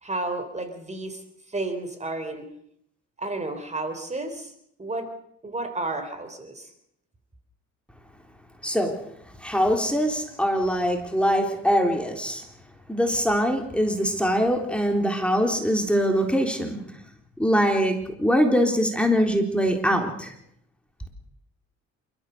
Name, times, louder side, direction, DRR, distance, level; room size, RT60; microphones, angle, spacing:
voice 1, 0.0-2.5 3.2-4.5 4.8-5.1 5.4-6.7, right 2 dB, 25° right, 8 dB, 3.5 m, -32 dB
voice 2, 8.6-9.0 9.4-12.4 12.9-16.8 17.4-20.3, equal, 5° left, 3 dB, 3.7 m, -23 dB
28.0 x 13.5 x 6.8 m, 0.73 s
cardioid pair, 90°, 30 cm